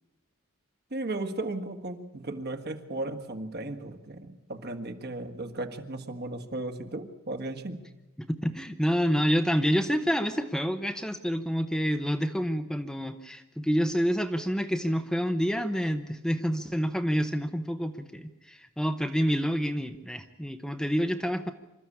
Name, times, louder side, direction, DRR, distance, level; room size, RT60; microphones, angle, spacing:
voice 1, 0.9-7.8, right 2 dB, 50° right, 7 dB, 1.7 m, -35 dB
voice 2, 8.2-21.5, equal, 5° left, 7 dB, 0.8 m, -28 dB
26.0 x 13.5 x 8.6 m, 1.1 s
head